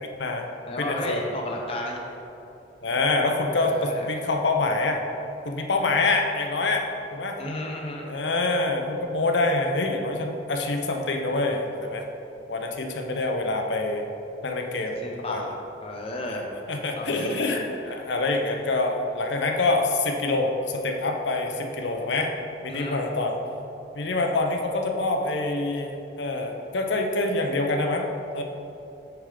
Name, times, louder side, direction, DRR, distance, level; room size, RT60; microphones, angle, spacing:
voice 1, 0.0-0.5 0.8-1.2 2.8-5.0 5.4-6.9 7.1-7.4 8.0-12.0 12.5-14.0 14.4-15.0 15.3-15.4 16.2-22.3 22.6-23.4 23.9-28.1 28.3-28.4, left 2 dB, 80° left, 3 dB, 0.8 m, -26 dB
voice 2, 0.7-2.0 3.6-4.1 7.4-8.0 15.0-15.5 15.8-16.4 17.0-17.4 22.7-23.0, left 1 dB, 30° left, -1 dB, 0.7 m, -33 dB
8.9 x 3.7 x 5.0 m, 2.9 s
head